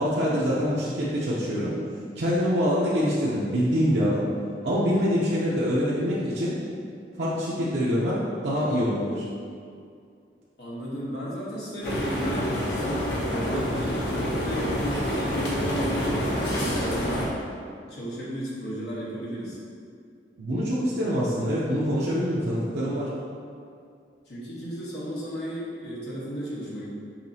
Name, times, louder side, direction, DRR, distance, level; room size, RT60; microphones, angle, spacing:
voice 1, 0.0-1.8 2.2-4.3 4.6-6.6 7.2-9.2 20.4-23.1, equal, 75° right, -8 dB, 0.6 m, -25 dB
voice 2, 10.6-17.3 17.9-19.6 24.3-26.8, equal, 70° left, -7 dB, 1.2 m, -34 dB
sound 1, 11.8-17.3, equal, 85° left, 0.9 m, -27 dB
5.8 x 2.7 x 2.8 m, 2.3 s
head